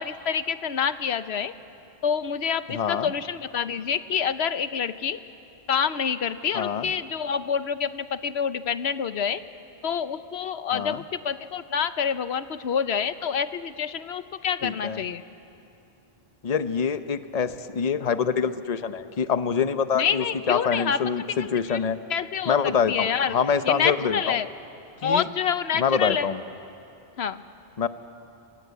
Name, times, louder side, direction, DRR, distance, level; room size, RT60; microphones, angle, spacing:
voice 1, 0.0-1.5 2.0-5.2 5.7-9.4 9.8-15.2 19.9-21.0 21.4-21.8 22.1-23.4 23.6-24.5 25.0-26.3 27.2-27.4, left 7 dB, 85° left, 12 dB, 1.1 m, -27 dB
voice 2, 2.7-3.1 6.5-6.9 10.7-11.0 14.6-15.0 16.4-22.0 22.5-24.4 25.0-25.2 25.8-26.4 27.8-27.9, left 6 dB, 40° left, 11 dB, 0.9 m, -25 dB
27.5 x 26.0 x 8.3 m, 2.8 s
omnidirectional pair, 1.1 m